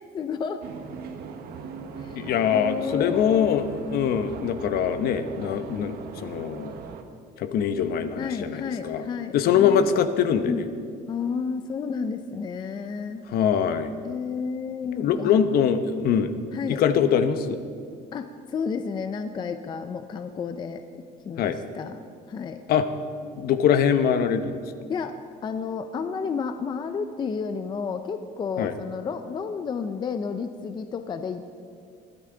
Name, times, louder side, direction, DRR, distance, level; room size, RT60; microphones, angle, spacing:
voice 1, 0.1-0.6 2.0-2.2 2.5-3.7 8.2-9.9 10.4-10.6 11.1-13.2 14.0-15.4 16.5-16.8 18.1-22.0 22.3-22.6 24.9-25.1 25.4-31.5, left 5 dB, 25° left, 8 dB, 0.4 m, -31 dB
sound 1, 0.6-7.0, right 5 dB, 55° right, 1.2 m, -39 dB
voice 2, 2.2-6.8 7.4-9.0 9.3-10.6 13.3-13.9 15.0-16.3 16.7-17.6 21.4-21.6 22.7-22.9 23.4-24.6 28.6-28.7, left 8 dB, 55° left, 10 dB, 0.9 m, -23 dB
21.0 x 13.5 x 3.8 m, 2.3 s
cardioid pair, 175°, 19 cm